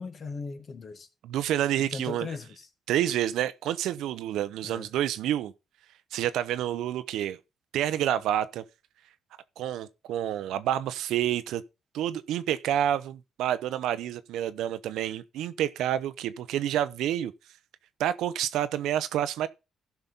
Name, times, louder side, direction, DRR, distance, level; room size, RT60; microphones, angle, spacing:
voice 1, 0.0-1.1 1.8-2.7 4.6-4.9, left 4 dB, 45° left, 1.5 m, -38 dB
voice 2, 1.2-2.3 2.9-5.5 6.1-7.4 7.7-8.6 9.6-11.6 11.9-17.3 18.0-19.5, right 11 dB, 85° right, 0.6 m, -28 dB
14.5 x 5.8 x 3.9 m
cardioid pair, 90°, 0 cm